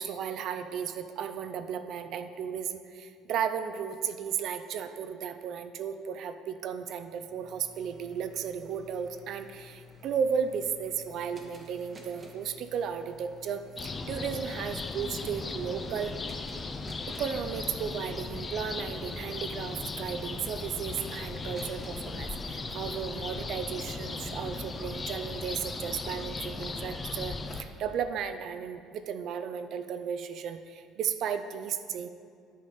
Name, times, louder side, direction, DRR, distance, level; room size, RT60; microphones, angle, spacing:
voice 1, 0.0-16.1 17.1-32.1, right 7 dB, 50° right, 10 dB, 0.4 m, -34 dB
sound 1, 7.1-25.6, left 3 dB, 20° right, 0.8 m, -52 dB
sound 2, 13.8-27.6, left 3 dB, 20° left, 0.4 m, -37 dB
9.8 x 5.0 x 4.2 m, 2.3 s
cardioid pair, 165°, 0 cm